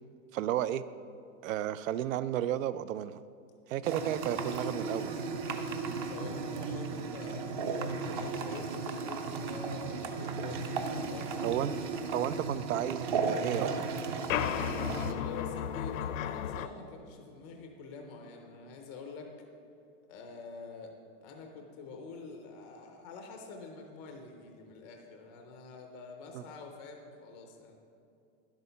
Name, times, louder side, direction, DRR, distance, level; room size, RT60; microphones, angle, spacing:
voice 1, 0.3-0.8 1.4-3.2 3.7-5.3 11.4-11.7 12.1-14.3 26.3-26.4, right 11 dB, 90° right, 16 dB, 0.5 m, -33 dB
sound 1, 3.8-15.1, right 4 dB, 40° right, 0.7 m, -35 dB
voice 2, 6.1-11.4 15.0-19.3 20.1-20.9 21.2-27.7, left 4 dB, 15° left, 3 dB, 0.4 m, -46 dB
sound 2, 14.3-16.7, left 10 dB, 85° left, 0.6 m, -33 dB
11.0 x 8.2 x 5.6 m, 2.6 s
supercardioid pair, 175°, 38 cm